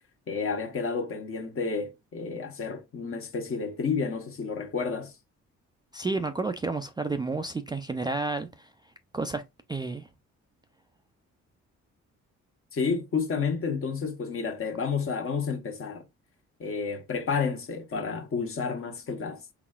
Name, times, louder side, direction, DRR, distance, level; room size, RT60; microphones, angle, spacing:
voice 1, 0.3-5.1 12.7-16.0 16.6-19.5, left 5 dB, 45° left, 0.9 m, -30 dB
voice 2, 5.9-8.7 9.1-9.4 9.7-10.1, right 3 dB, 15° right, 0.3 m, -31 dB
3.9 x 3.6 x 2.3 m
cardioid pair, 90°, 30 cm